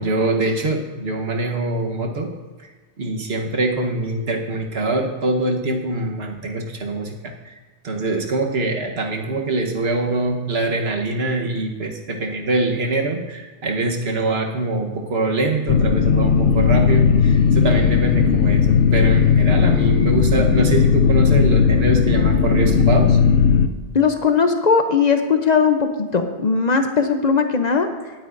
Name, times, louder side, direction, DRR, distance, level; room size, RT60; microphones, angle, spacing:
voice 1, 0.0-2.3 3.0-7.6 7.8-23.2, right 2 dB, 75° right, 2 dB, 1.4 m, -23 dB
sound 1, 15.7-23.7, left 6 dB, 80° left, 0.9 m, -16 dB
voice 2, 23.9-27.9, left 5 dB, 45° left, 6 dB, 0.7 m, -18 dB
18.5 x 9.1 x 2.6 m, 1.3 s
omnidirectional pair, 1.1 m